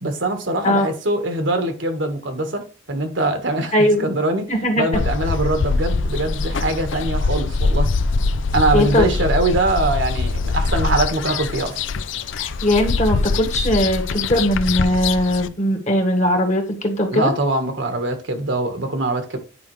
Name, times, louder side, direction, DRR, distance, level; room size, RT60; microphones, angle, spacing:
voice 1, 0.0-2.6 2.9-3.7 4.0-4.5 4.8-7.9 8.5-11.7 17.1-19.4, right 2 dB, 65° right, 1.5 m, -22 dB
voice 2, 3.7-4.1 4.5-4.8 8.7-9.1 12.4-17.3, left 1 dB, 35° left, 1.6 m, -19 dB
sound 1, 4.9-15.5, left 3 dB, 70° left, 0.5 m, -23 dB
9.6 x 5.0 x 3.2 m
head